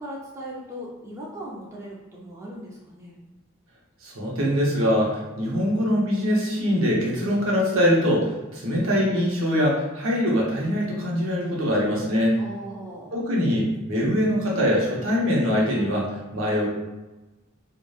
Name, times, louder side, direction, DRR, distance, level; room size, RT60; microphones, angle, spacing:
voice 1, 0.0-3.2 12.4-13.2, right 1 dB, 15° right, -5 dB, 0.3 m, -38 dB
voice 2, 4.0-12.4 13.1-16.7, equal, 75° right, -3 dB, 0.7 m, -23 dB
2.8 x 2.1 x 2.2 m, 1.1 s
head